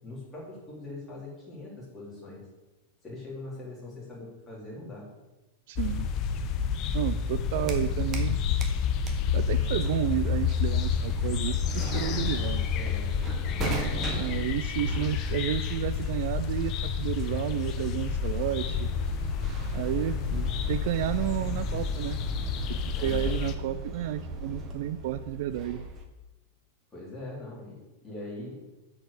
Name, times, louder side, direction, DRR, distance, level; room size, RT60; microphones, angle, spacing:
voice 1, 0.0-2.4 3.0-5.1 12.7-13.1 13.6-14.0 23.0-23.3 26.9-28.6, left 2 dB, 10° left, -6 dB, 2.9 m, -42 dB
voice 2, 5.7-6.1 6.9-8.4 9.3-12.7 14.2-18.9 19.7-22.2 22.7-25.8, right 13 dB, 50° right, 12 dB, 0.3 m, -31 dB
sound 1, 5.8-23.6, left 7 dB, 30° left, 0.6 m, -29 dB
sound 2, 7.3-8.3 8.6-26.1, right 3 dB, 20° right, 1.0 m, -39 dB
8.2 x 5.0 x 6.4 m, 1.1 s
supercardioid pair, 170°, 0 cm